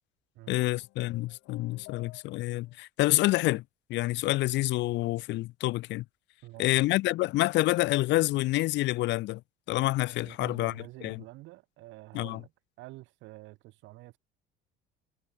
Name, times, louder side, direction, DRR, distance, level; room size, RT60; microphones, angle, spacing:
voice 1, 0.5-3.6 3.9-6.0 6.6-9.4 9.7-10.7 11.0-11.2 12.1-12.4, left 18 dB, 60° left, 1.0 m, -27 dB
sound 1, 0.7-2.8, left 26 dB, 90° left, 4.9 m, -53 dB
voice 2, 6.4-6.7 10.2-12.5 12.8-14.2, right 19 dB, 65° right, 3.2 m, -48 dB
cardioid pair, 160°, 21 cm